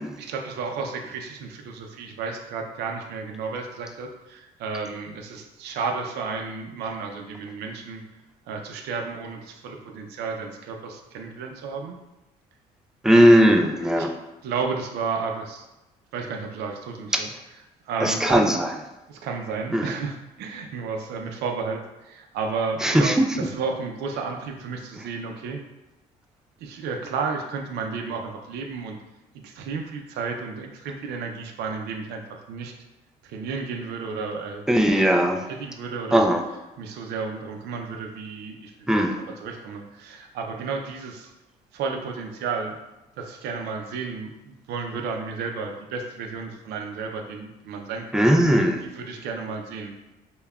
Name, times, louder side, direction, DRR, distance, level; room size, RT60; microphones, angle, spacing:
voice 1, 0.2-8.0 8.5-12.0 14.0-14.1 14.4-15.7 16.1-17.3 17.8-18.5 19.1-25.6 26.6-29.0 29.4-32.7 33.2-35.0 35.5-36.3 36.8-41.3 41.7-42.8 43.2-48.3 48.8-50.0, right 5 dB, 80° right, 3 dB, 0.5 m, -32 dB
voice 2, 13.0-14.1 17.1-17.2 18.0-18.7 19.7-19.9 22.8-23.2 34.7-35.4 36.1-36.4 38.9-39.2 48.1-48.8, equal, 5° right, 3 dB, 0.3 m, -18 dB
5.3 x 2.2 x 2.3 m, 1.0 s
cardioid pair, 110°, 17 cm